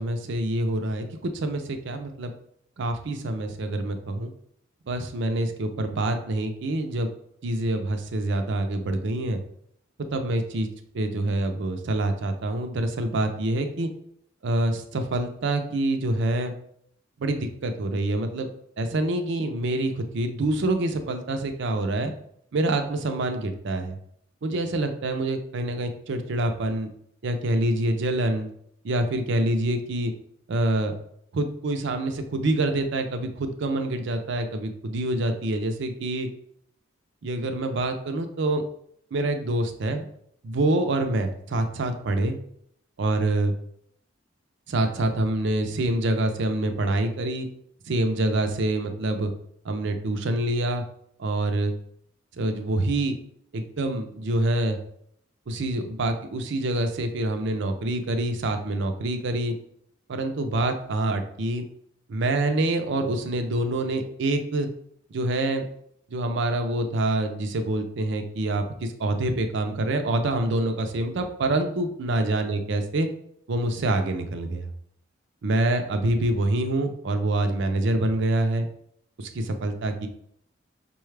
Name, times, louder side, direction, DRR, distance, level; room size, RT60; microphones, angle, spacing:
voice 1, 0.0-2.3 2.8-4.3 4.9-7.1 7.4-9.4 10.1-10.7 10.9-13.9 14.4-16.5 17.2-18.5 18.8-22.1 22.5-24.0 24.4-26.9 27.2-28.5 28.8-30.1 30.5-30.9 31.3-36.3 37.2-38.6 39.1-40.1 40.4-42.4 43.0-43.5 44.7-47.5 47.9-49.3 49.6-50.8 51.2-51.7 52.4-53.2 53.5-54.8 55.5-59.6 60.1-61.6 62.1-64.7 65.1-65.6 66.1-73.1 73.5-74.7 75.4-78.7 79.2-80.1, right 1 dB, 65° right, 7 dB, 0.5 m, -26 dB
5.4 x 2.3 x 3.2 m, 0.69 s
head